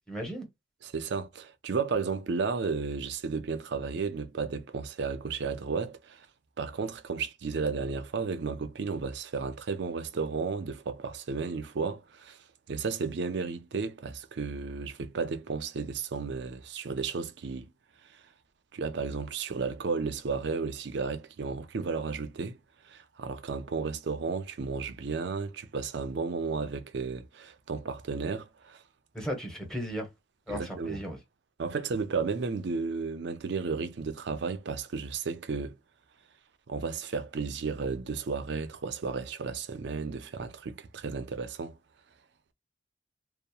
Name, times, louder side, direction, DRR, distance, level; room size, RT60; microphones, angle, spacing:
voice 1, 0.1-0.5 29.1-30.1 30.5-31.2, equal, 5° left, 0.8 m, -35 dB
voice 2, 0.8-6.3 6.6-17.7 18.1-18.2 18.7-22.6 22.8-28.8 30.5-31.0 31.6-35.8 36.7-41.8, right 4 dB, 70° right, 0.5 m, -33 dB
2.8 x 2.0 x 2.3 m
head